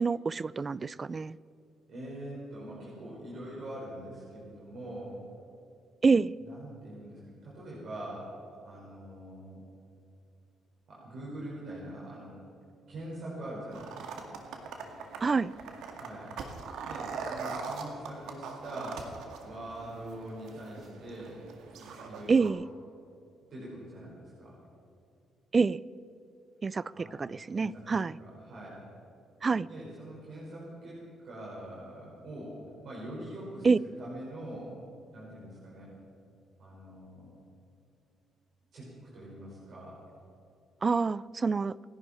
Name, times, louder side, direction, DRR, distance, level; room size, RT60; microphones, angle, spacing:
voice 1, 0.0-1.4 6.0-6.3 15.2-15.5 22.3-22.6 25.5-25.8 26.6-28.2 29.4-29.7 33.6-33.8 40.8-41.7, right 4 dB, 35° right, 21 dB, 0.4 m, -27 dB
voice 2, 1.9-5.2 6.4-8.3 8.6-9.6 10.9-12.4 12.9-14.3 16.0-16.3 16.8-19.2 19.4-21.4 21.8-22.5 23.5-24.6 26.9-27.1 27.5-28.8 29.7-32.6 32.8-33.7 34.0-34.7 35.1-35.9 36.6-37.3 38.7-40.0, right 1 dB, 60° right, -6 dB, 5.2 m, -43 dB
sound 1, 13.7-22.5, right 4 dB, 75° right, 1.9 m, -42 dB
28.5 x 11.0 x 4.4 m, 2.6 s
supercardioid pair, 70°, 0 cm